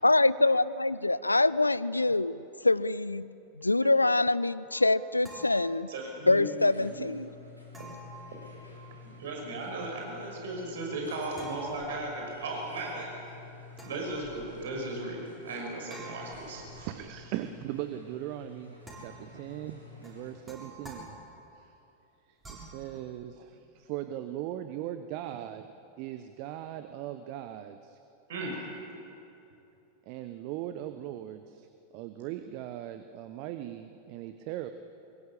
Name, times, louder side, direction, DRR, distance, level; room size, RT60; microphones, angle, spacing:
voice 1, 0.0-2.4 2.6-3.2 3.6-5.9 6.3-7.3, left 2 dB, 85° left, 19 dB, 0.5 m, -25 dB
sound 1, 4.7-6.3 7.7-9.1 11.3-12.4 13.7-14.8 15.9-17.3 18.8-19.5 20.0-21.6 22.4-22.9, right 2 dB, 15° right, 7.1 m, -50 dB
voice 2, 5.9-6.4 6.9-7.0 9.0-13.1 13.8-16.9 28.3-28.6, right 2 dB, 60° right, 1 dB, 5.8 m, -36 dB
sound 2, 6.3-20.7 22.5-22.6, left 4 dB, 90° right, 6.0 m, -51 dB
voice 3, 16.8-18.8 19.0-21.2 21.6-21.7 22.3-25.7 26.0-28.0 28.5-28.6 30.1-31.7 31.9-34.7, right 12 dB, 45° right, 9 dB, 1.1 m, -39 dB
25.0 x 22.5 x 8.5 m, 2.8 s
figure-of-eight pair, 90°, 0 cm